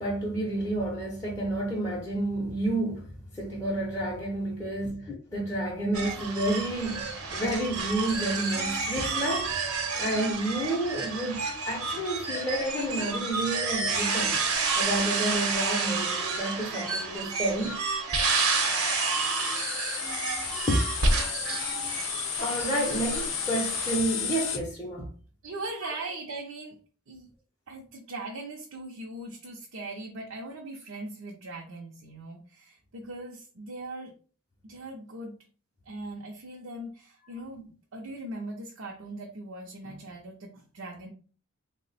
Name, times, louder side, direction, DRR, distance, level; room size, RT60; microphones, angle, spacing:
voice 1, 0.0-9.6 10.0-14.4 14.8-17.8 20.6-20.9 22.4-25.1 25.8-25.9, right 1 dB, 15° left, 0.6 m, -30 dB
sound 1, 5.9-24.0, right 4 dB, 90° right, 0.9 m, -30 dB
sound 2, 18.1-24.6, left 7 dB, 60° left, 0.6 m, -33 dB
voice 2, 25.4-26.8 27.1-27.3 27.7-34.1 34.6-35.4 35.8-41.1, right 2 dB, 65° right, 0.6 m, -40 dB
3.3 x 2.1 x 3.9 m
head